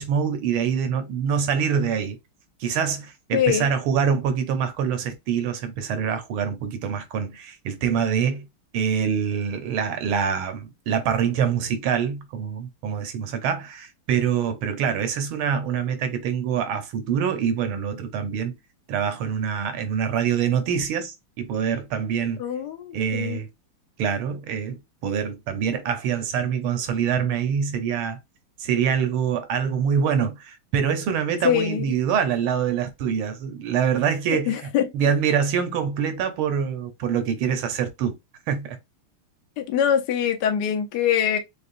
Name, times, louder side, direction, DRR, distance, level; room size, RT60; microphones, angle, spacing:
voice 1, 0.0-2.2 2.6-8.5 8.7-18.6 18.9-22.4 22.9-23.5 24.0-28.2 28.6-38.2 38.5-38.8, right 7 dB, 75° right, 1.6 m, -25 dB
voice 2, 3.3-3.7 22.4-23.4 31.4-31.8 34.5-34.9 39.6-41.4, left 9 dB, 60° left, 1.2 m, -23 dB
6.6 x 2.3 x 2.6 m
omnidirectional pair, 2.4 m